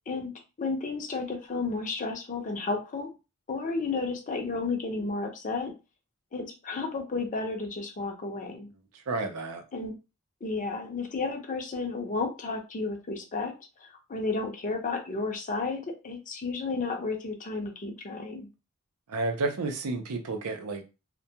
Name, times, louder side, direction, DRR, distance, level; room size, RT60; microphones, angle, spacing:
voice 1, 0.6-3.1 3.5-5.7 6.3-8.7 9.7-9.9 10.4-13.5 13.8-18.5, left 3 dB, 35° left, 0.5 m, -32 dB
voice 2, 9.1-9.6 19.1-20.8, right 3 dB, 75° right, 0.5 m, -31 dB
2.2 x 2.1 x 2.7 m
head